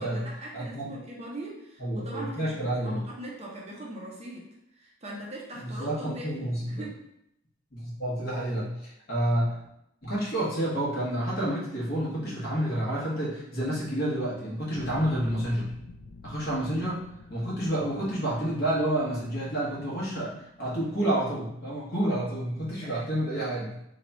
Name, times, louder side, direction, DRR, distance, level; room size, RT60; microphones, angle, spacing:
voice 1, 0.0-4.5 4.7-7.0 22.8-23.7, right 1 dB, 30° right, -3 dB, 0.6 m, -41 dB
voice 2, 0.5-0.9 1.8-3.0 5.5-6.8 7.7-9.6 10.0-15.7 16.2-17.0 17.3-23.7, right 1 dB, 50° left, -6 dB, 1.1 m, -29 dB
sound 1, 14.7-23.2, left 3 dB, 65° left, 0.3 m, -49 dB
3.0 x 2.3 x 4.0 m, 0.79 s
head